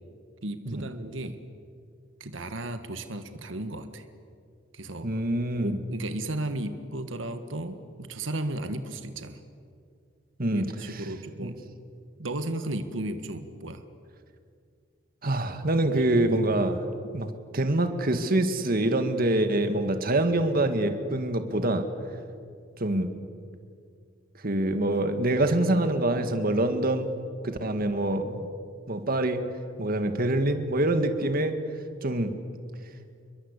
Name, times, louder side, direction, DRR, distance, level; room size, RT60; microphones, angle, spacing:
voice 1, 0.4-1.4 2.2-4.0 4.7-5.2 5.6-9.4 10.5-11.6 12.2-13.8 15.9-16.4, right 1 dB, 90° right, 8 dB, 1.7 m, -34 dB
voice 2, 5.0-5.8 10.4-11.0 11.4-11.5 15.2-16.8 17.1-21.9 22.8-23.1 24.4-27.1 27.4-28.5 28.9-29.4 29.8-31.6 32.0-32.3, right 1 dB, 50° right, 8 dB, 2.0 m, -25 dB
29.5 x 22.0 x 8.3 m, 2.3 s
head